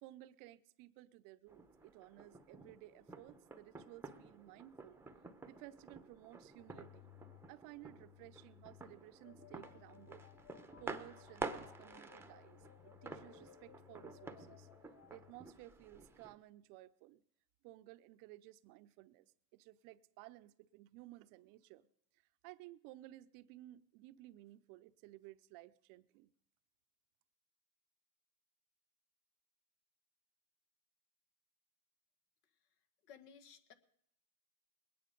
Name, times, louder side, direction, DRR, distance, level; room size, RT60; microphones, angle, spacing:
voice 1, 0.0-5.0 5.4-7.1 7.5-10.3 10.8-14.7 15.1-17.2 17.6-19.2 19.5-21.9 22.4-26.3, right 16 dB, 45° right, 0.6 m, -57 dB
sound 1, 1.5-16.4, right 3 dB, 5° right, 0.7 m, -51 dB
sound 2, 6.6-15.3, left 15 dB, 30° left, 0.5 m, -61 dB
voice 2, 32.4-32.7 33.0-33.7, left 7 dB, 75° left, 1.6 m, -59 dB
21.0 x 9.7 x 5.1 m
supercardioid pair, 120°, 47 cm